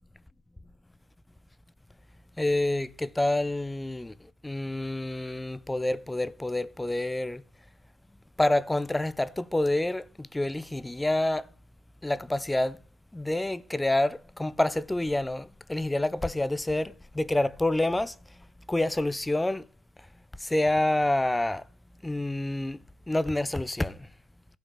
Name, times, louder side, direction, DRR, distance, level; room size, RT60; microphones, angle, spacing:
voice 1, 2.4-7.4 8.4-11.5 12.0-12.8 13.1-19.7 20.4-21.6 22.0-22.8 23.1-24.1, left 1 dB, 10° left, 0.6 m, -28 dB
14.0 x 5.1 x 5.8 m
figure-of-eight pair, 60°, 0 cm